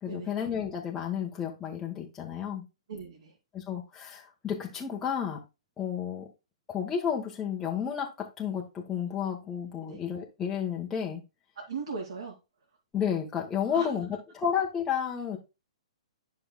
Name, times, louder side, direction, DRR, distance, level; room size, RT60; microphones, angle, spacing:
voice 1, 0.0-2.6 3.5-5.4 5.8-6.3 6.7-11.2 12.9-14.1 14.3-15.4, left 8 dB, 15° left, 0 dB, 1.3 m, -31 dB
voice 2, 2.9-3.4 9.8-10.0 11.6-12.4 13.7-13.9, right 5 dB, 65° right, -1 dB, 2.2 m, -38 dB
9.9 x 5.9 x 2.3 m, 0.26 s
figure-of-eight pair, 120°, 3 cm